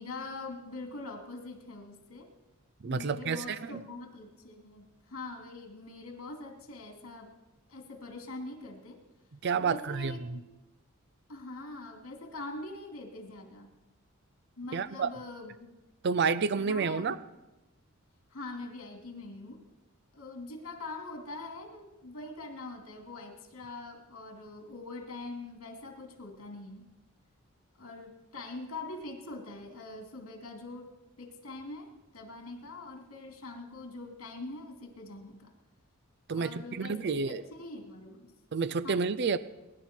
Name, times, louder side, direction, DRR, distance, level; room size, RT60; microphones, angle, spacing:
voice 1, 0.0-2.3 2.9-7.3 7.7-9.0 9.6-10.5 11.3-13.7 14.6-15.8 16.6-17.2 18.3-19.6 20.1-26.9 27.8-30.9 31.2-35.5 36.3-38.3 38.8-39.0, left 2 dB, 75° left, 3 dB, 2.6 m, -43 dB
voice 2, 2.8-3.8 9.4-10.2 14.7-15.1 16.0-17.2 36.3-36.5 36.8-37.4 38.5-39.4, right 5 dB, 50° right, 14 dB, 0.5 m, -29 dB
22.0 x 11.0 x 4.4 m, 1.0 s
head